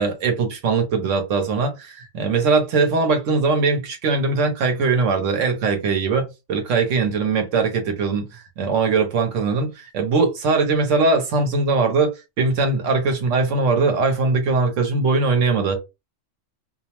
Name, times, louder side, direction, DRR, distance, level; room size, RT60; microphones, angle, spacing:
voice 1, 0.0-15.8, right 4 dB, 90° right, 1.1 m, -21 dB
2.5 x 2.0 x 2.9 m
omnidirectional pair, 1.2 m